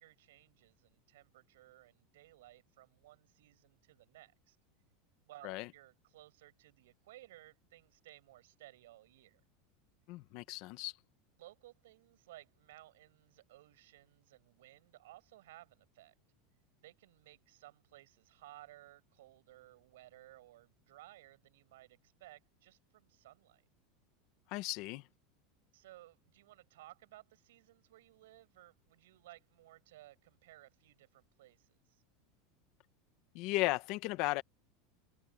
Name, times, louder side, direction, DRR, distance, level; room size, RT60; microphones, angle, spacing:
voice 1, 0.0-4.6 5.3-9.4 11.4-16.1 16.8-23.7 25.7-32.0, right 16 dB, 85° right, 8.0 m, -58 dB
voice 2, 10.1-10.9 24.5-25.0 33.3-34.4, left 19 dB, 45° left, 1.2 m, -35 dB
supercardioid pair, 170°, 0 cm